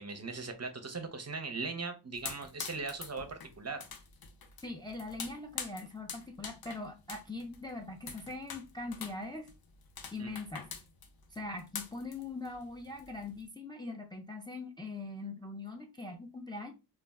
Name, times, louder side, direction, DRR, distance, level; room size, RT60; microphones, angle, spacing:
voice 1, 0.0-3.8 10.2-10.4, right 4 dB, 40° right, 6 dB, 0.6 m, -39 dB
sound 1, 2.1-13.5, left 6 dB, 65° left, 0.5 m, -46 dB
voice 2, 4.6-9.5 10.1-10.7 11.3-16.7, left 3 dB, 10° left, 2 dB, 0.4 m, -42 dB
2.3 x 2.0 x 3.4 m, 0.28 s
wide cardioid pair, 55°, 39 cm